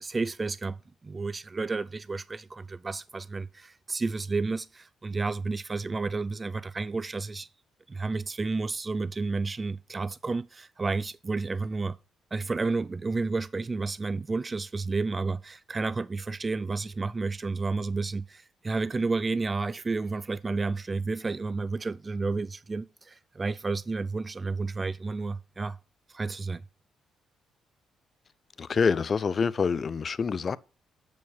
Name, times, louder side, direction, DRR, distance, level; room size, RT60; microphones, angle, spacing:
voice 1, 0.0-7.5 7.9-12.0 12.3-25.8 26.1-26.6, right 3 dB, 25° right, 0.3 m, -31 dB
voice 2, 28.6-30.6, left 5 dB, 40° left, 0.4 m, -26 dB
7.4 x 4.3 x 6.3 m
cardioid pair, 90°, 0 cm